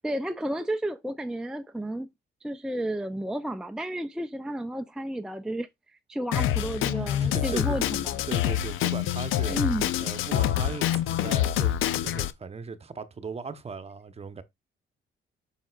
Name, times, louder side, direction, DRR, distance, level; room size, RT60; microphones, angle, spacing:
voice 1, 0.0-2.1 2.4-5.7 6.1-8.2 9.5-9.9, right 1 dB, 5° right, 0.5 m, -32 dB
Drum kit, 6.3-12.3, left 12 dB, 90° left, 0.6 m, -26 dB
voice 2, 6.3-7.8 8.3-9.5 10.0-14.4, right 5 dB, 30° right, 0.9 m, -38 dB
7.5 x 5.8 x 2.4 m
cardioid pair, 90°, 20 cm